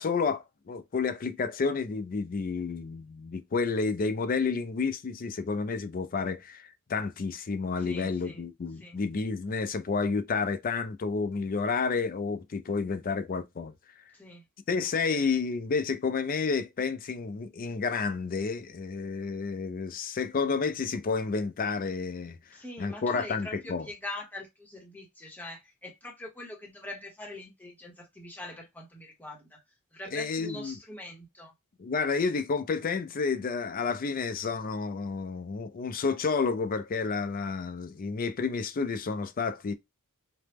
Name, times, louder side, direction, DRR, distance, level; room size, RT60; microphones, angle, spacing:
voice 1, 0.0-13.7 14.7-22.4 22.8-23.9 30.1-30.8 31.8-39.7, left 4 dB, 40° left, 0.4 m, -30 dB
voice 2, 7.8-8.5 8.8-9.0 14.1-14.4 15.1-15.4 22.5-29.6 29.9-31.5, left 1 dB, 10° left, 0.9 m, -43 dB
2.9 x 2.1 x 3.3 m
head